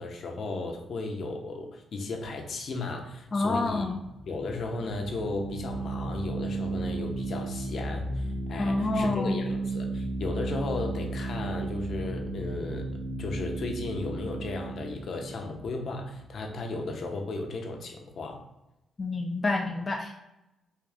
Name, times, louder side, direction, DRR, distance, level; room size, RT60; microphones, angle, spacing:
voice 1, 0.0-4.0 4.3-12.9 13.2-18.5, left 3 dB, 60° left, 2 dB, 0.7 m, -35 dB
voice 2, 3.3-4.0 8.6-9.4 19.0-20.2, left 3 dB, 30° left, 1 dB, 0.3 m, -28 dB
sound 1, 3.9-16.8, right 2 dB, 90° right, 1.0 m, -34 dB
3.7 x 2.6 x 3.4 m, 0.94 s
cardioid pair, 105°, 0 cm